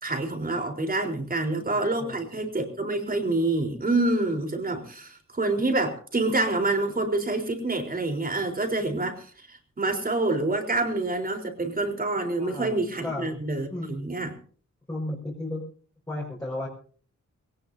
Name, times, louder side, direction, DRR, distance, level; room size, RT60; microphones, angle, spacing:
voice 1, 0.0-14.4, right 2 dB, 30° right, 4 dB, 4.0 m, -27 dB
voice 2, 1.4-2.2 12.4-13.4 13.7-14.1 14.9-15.6 16.1-16.7, left 1 dB, 10° left, -4 dB, 5.3 m, -35 dB
22.5 x 18.5 x 2.7 m, 0.44 s
wide cardioid pair, 160°, 29 cm